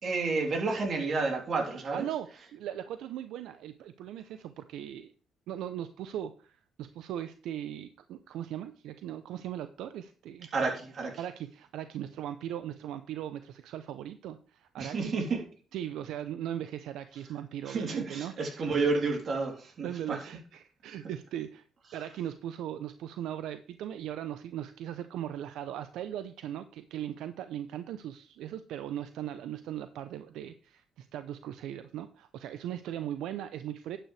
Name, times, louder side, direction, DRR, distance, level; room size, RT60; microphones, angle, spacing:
voice 1, 0.0-2.1 10.5-11.2 14.8-15.4 17.6-20.2, right 3 dB, 55° right, 2 dB, 3.2 m, -30 dB
voice 2, 1.9-5.1 5.5-10.5 11.2-15.2 15.7-18.6 19.8-21.6 21.9-34.0, right 11 dB, 85° right, 11 dB, 0.6 m, -39 dB
11.5 x 9.1 x 3.3 m, 0.41 s
cardioid pair, 90°, 0 cm